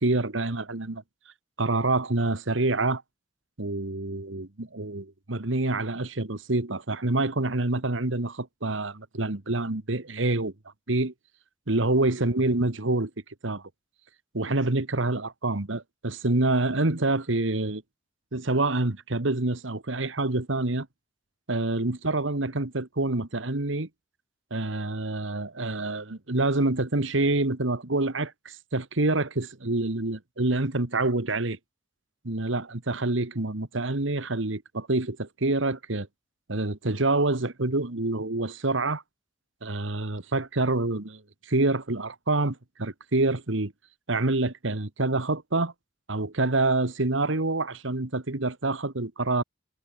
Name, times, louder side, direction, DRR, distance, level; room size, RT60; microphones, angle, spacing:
voice 1, 0.0-1.0 1.6-3.0 3.6-10.5 10.9-11.1 11.7-13.1 13.4-13.6 14.3-17.8 18.3-20.9 21.5-23.9 24.5-31.6 32.2-36.1 36.5-39.0 39.6-41.2 41.5-43.7 44.1-45.7 46.1-49.4, right 2 dB, 80° right, 1.7 m, -27 dB
head